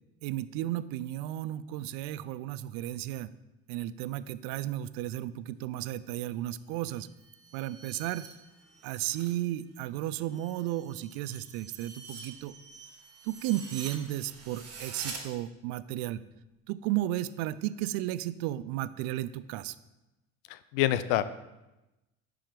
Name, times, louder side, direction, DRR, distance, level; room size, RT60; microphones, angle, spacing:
voice 1, 0.2-3.3 3.7-7.1 7.5-8.3 8.8-12.6 13.2-16.2 16.7-19.7, right 14 dB, 65° right, 16 dB, 0.5 m, -34 dB
sound 1, 6.9-9.4 9.7-15.2, right 5 dB, 40° right, 1.7 m, -46 dB
voice 2, 20.5-21.4, left 13 dB, 70° left, 14 dB, 0.6 m, -27 dB
5.8 x 4.9 x 5.1 m, 1.0 s
hypercardioid pair, 75°, 39 cm